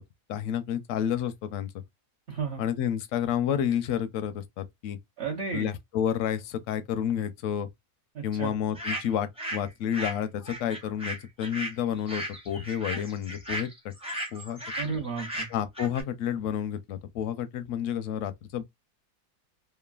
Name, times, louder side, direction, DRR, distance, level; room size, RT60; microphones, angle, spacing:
voice 1, 0.3-1.8 2.6-5.0 5.5-7.7 8.2-13.9 14.3-14.9 15.5-18.6, left 9 dB, 70° left, 0.8 m, -30 dB
voice 2, 2.3-2.6 5.2-5.7 8.1-8.5 14.8-15.5, right 5 dB, 55° right, 0.9 m, -33 dB
sound 1, 8.7-9.6 9.9-16.0, right 1 dB, 10° right, 0.3 m, -36 dB
3.1 x 2.1 x 2.3 m
omnidirectional pair, 1.7 m